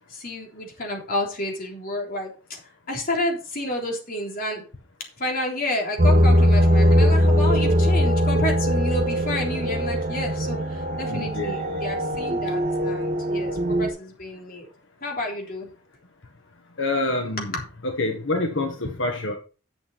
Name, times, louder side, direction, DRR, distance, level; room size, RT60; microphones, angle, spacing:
voice 1, 0.1-2.6 2.9-4.6 5.2-14.7 15.0-15.7, left 1 dB, 50° left, 0 dB, 3.6 m, -30 dB
sound 1, 6.0-13.9, equal, 50° right, 2.2 m, -20 dB
voice 2, 11.1-11.8 16.8-17.5 17.8-19.3, left 2 dB, 85° left, 4 dB, 1.6 m, -27 dB
11.0 x 7.3 x 4.3 m, 0.35 s
head